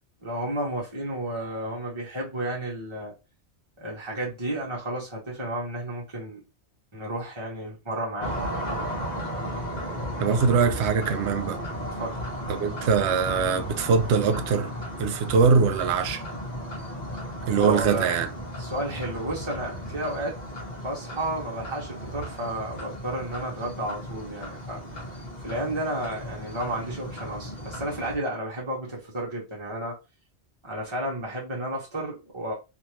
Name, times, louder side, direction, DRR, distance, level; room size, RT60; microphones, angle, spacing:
voice 1, 0.2-3.1 3.8-6.4 6.9-8.6 12.0-12.2 17.6-18.1 18.6-20.4 20.8-24.8 25.4-30.0 30.6-32.5, right 1 dB, 30° right, 0.9 m, -32 dB
sound 1, 8.2-28.2, equal, 40° left, 1.1 m, -35 dB
voice 2, 10.2-11.6 12.5-14.7 15.0-16.2 17.5-18.3, right 5 dB, 80° right, 0.9 m, -22 dB
3.2 x 2.6 x 2.7 m
omnidirectional pair, 1.1 m